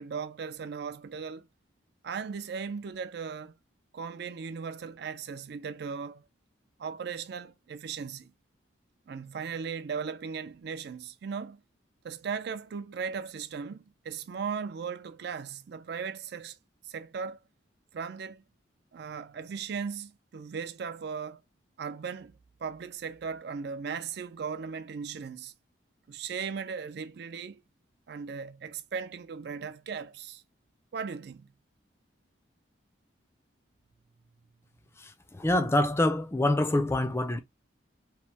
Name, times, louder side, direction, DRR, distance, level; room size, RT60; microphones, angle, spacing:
voice 1, 0.0-1.5 2.0-3.5 3.9-6.3 6.8-8.3 9.1-11.6 12.0-16.6 16.8-17.4 17.9-18.4 18.9-21.4 21.8-25.5 26.1-27.6 28.1-30.4 30.9-31.5, right 6 dB, 55° right, 0.4 m, -37 dB
voice 2, 35.0-37.4, left 1 dB, 15° left, 0.3 m, -26 dB
3.2 x 2.1 x 2.7 m
head